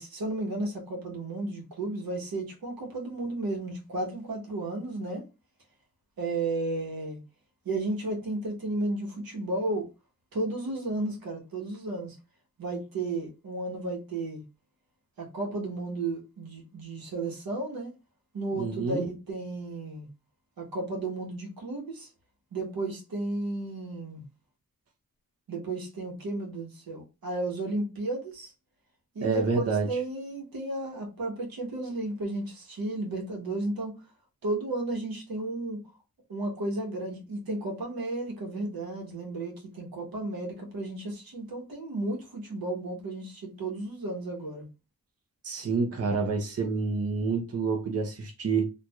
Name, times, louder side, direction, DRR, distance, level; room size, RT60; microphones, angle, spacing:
voice 1, 0.0-5.2 6.2-7.2 7.6-9.9 10.3-12.2 12.6-14.4 15.2-17.9 18.3-20.1 20.6-22.1 22.5-24.3 25.5-28.5 29.1-33.9 34.4-35.8 36.3-44.7, right 2 dB, 80° right, 1.2 m, -33 dB
voice 2, 18.6-19.0 29.2-30.0 45.4-48.7, right 4 dB, 45° right, 0.8 m, -28 dB
4.3 x 2.6 x 2.3 m
wide cardioid pair, 130°, 35 cm